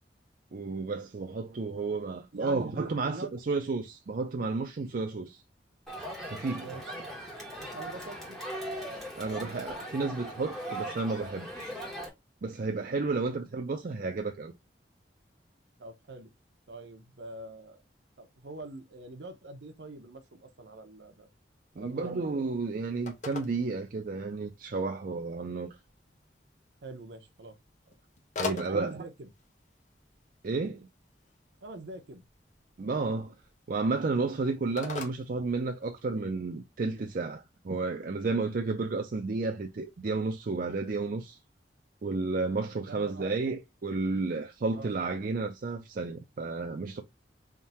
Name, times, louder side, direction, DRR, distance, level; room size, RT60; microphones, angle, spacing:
voice 1, 0.5-5.4 6.2-6.6 9.2-11.8 12.4-14.5 21.8-25.8 28.4-29.0 30.4-30.9 32.8-33.3 33.7-41.4 42.0-47.0, right 3 dB, 50° right, 0.4 m, -32 dB
voice 2, 2.3-3.3 6.5-6.9 7.6-8.4 15.8-16.3 16.7-17.8 18.2-21.3 21.8-22.2 26.8-27.6 28.4-29.3 31.6-32.3 42.8-43.3 44.7-44.9, right 2 dB, 70° right, 0.8 m, -44 dB
Crowd, 5.9-12.1, equal, ahead, 1.5 m, -39 dB
Telephone, 21.7-36.2, left 4 dB, 40° left, 0.8 m, -46 dB
3.6 x 2.7 x 4.1 m
head